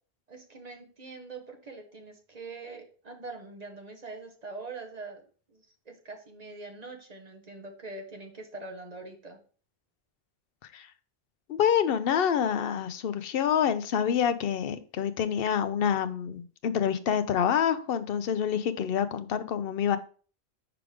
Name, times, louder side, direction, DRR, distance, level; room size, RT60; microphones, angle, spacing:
voice 1, 0.3-5.2 5.5-9.4, right 3 dB, 40° right, 3 dB, 1.2 m, -43 dB
voice 2, 11.5-20.0, left 8 dB, 65° left, 11 dB, 0.8 m, -27 dB
5.9 x 4.9 x 3.5 m, 0.40 s
omnidirectional pair, 1.1 m